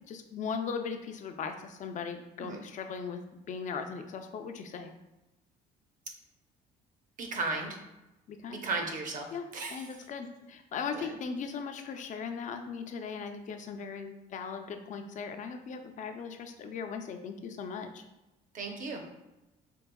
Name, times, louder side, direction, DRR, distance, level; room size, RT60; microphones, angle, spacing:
voice 1, 0.1-3.2 3.5-4.9 8.3-8.6 9.3-18.0, left 5 dB, 45° left, 6 dB, 0.5 m, -38 dB
voice 2, 7.2-7.8 8.5-9.3 9.5-9.8 10.9-11.1 18.5-19.0, right 3 dB, 50° right, 3 dB, 0.8 m, -35 dB
4.6 x 3.3 x 2.3 m, 0.99 s
cardioid pair, 110°, 17 cm